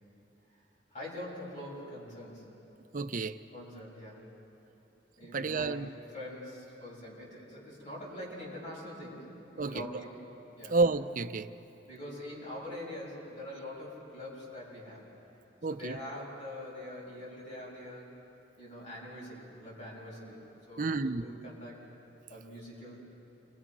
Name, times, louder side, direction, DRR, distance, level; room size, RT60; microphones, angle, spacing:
voice 1, 0.9-2.5 3.5-4.3 5.2-5.8 6.1-10.2 10.6-10.8 11.9-15.0 15.7-18.1 18.6-21.8 22.3-23.0, left 1 dB, 40° left, -6 dB, 7.6 m, -44 dB
voice 2, 2.9-3.4 5.3-5.9 9.6-9.9 10.7-11.5 15.6-16.0 20.8-21.2, right 3 dB, 50° right, 11 dB, 0.7 m, -30 dB
29.0 x 23.0 x 6.2 m, 3.0 s
head